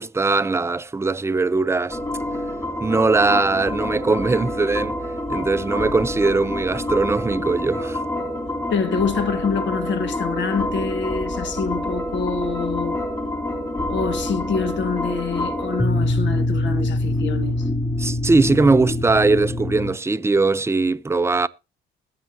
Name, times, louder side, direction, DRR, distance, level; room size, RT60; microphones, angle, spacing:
voice 1, 0.0-2.0 2.8-5.0 5.3-8.0 18.0-21.5, right 3 dB, 15° right, 0.5 m, -20 dB
sound 1, 1.9-19.9, left 1 dB, 20° left, 3.3 m, -26 dB
voice 2, 8.7-13.0 13.9-17.7, left 5 dB, 65° left, 1.5 m, -26 dB
20.5 x 7.4 x 2.8 m
cardioid pair, 90°, 20 cm